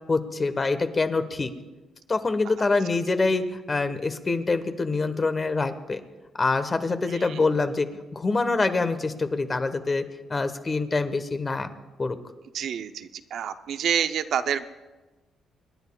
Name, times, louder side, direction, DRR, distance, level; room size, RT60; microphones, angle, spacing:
voice 1, 0.1-1.5 2.1-6.0 6.4-10.0 10.3-11.7 12.0-12.2, left 3 dB, 30° left, 9 dB, 1.0 m, -25 dB
voice 2, 12.5-14.7, right 8 dB, 70° right, 10 dB, 0.6 m, -28 dB
27.5 x 10.5 x 2.3 m, 1.2 s
cardioid pair, 90°, 0 cm